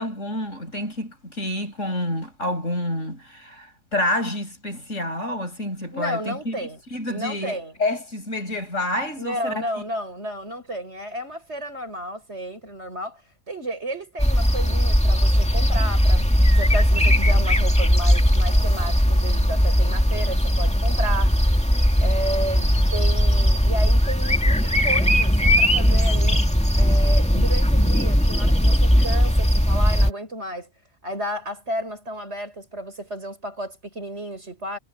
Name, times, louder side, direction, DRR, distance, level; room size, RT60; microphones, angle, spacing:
voice 1, 0.0-9.9, left 1 dB, 85° left, 8.5 m, -28 dB
voice 2, 5.9-6.8 7.1-7.7 9.2-13.2 13.5-16.3 16.6-21.4 22.0-26.5 26.8-30.7 31.0-34.8, right 1 dB, 65° right, 6.8 m, -32 dB
sound 1, 14.2-30.1, equal, 5° left, 2.3 m, -18 dB
omnidirectional pair, 1.3 m